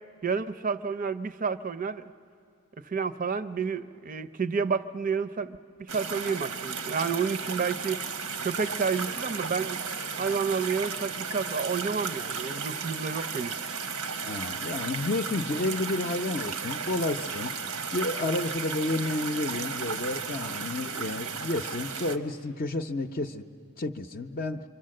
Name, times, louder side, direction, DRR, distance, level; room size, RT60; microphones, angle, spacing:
voice 1, 0.2-2.0 2.8-5.6 5.9-8.0 8.4-9.8 10.2-13.6, right 5 dB, 40° right, 14 dB, 0.5 m, -30 dB
sound 1, 5.9-22.2, right 5 dB, 90° right, 0.9 m, -34 dB
voice 2, 14.2-17.5 17.9-23.4 23.8-24.6, left 2 dB, 40° left, 6 dB, 0.6 m, -31 dB
27.0 x 24.0 x 7.6 m, 2.5 s
head